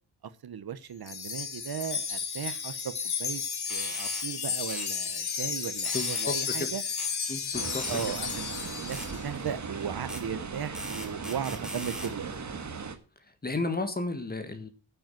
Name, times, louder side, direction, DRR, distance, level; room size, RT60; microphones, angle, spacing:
voice 1, 0.4-2.9 3.2-3.4 3.7-6.8 7.5-12.3, right 8 dB, 60° right, 1.1 m, -37 dB
Wind chime, 1.1-9.3, left 6 dB, 65° left, 2.0 m, -33 dB
sound 1, 3.7-4.3 4.7-4.9 5.8-6.3 7.0-7.1 7.8-8.1 8.9-9.1 10.1-10.2 10.7-12.1, equal, ahead, 1.7 m, -39 dB
voice 2, 5.9-6.7 7.3-7.9 13.4-14.7, left 3 dB, 20° left, 1.8 m, -33 dB
sound 2, 7.5-13.0, right 5 dB, 40° right, 1.6 m, -38 dB
10.0 x 7.6 x 7.8 m
wide cardioid pair, 165°, 42 cm